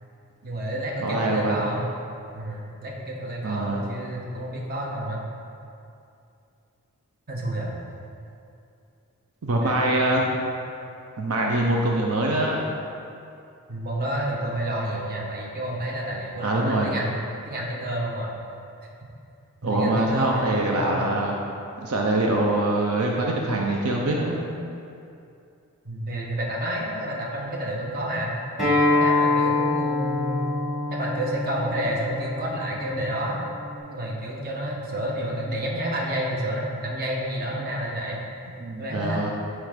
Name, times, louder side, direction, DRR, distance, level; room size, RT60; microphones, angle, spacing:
voice 1, 0.4-1.9 2.3-5.2 7.3-7.7 9.6-9.8 10.1-10.3 13.7-17.2 17.4-18.3 19.6-21.0 25.8-28.4 28.9-30.6 30.9-33.4 33.9-38.3 38.8-39.2, right 1 dB, 40° right, -3 dB, 1.0 m, -30 dB
voice 2, 1.0-1.6 3.4-3.9 9.4-10.3 11.2-12.7 16.4-16.9 19.6-21.3 21.8-24.4 38.6-39.3, right 1 dB, 75° right, -1 dB, 0.6 m, -24 dB
Acoustic guitar, 28.6-33.8, left 2 dB, ahead, 1.7 m, -25 dB
9.2 x 3.2 x 5.0 m, 2.6 s
head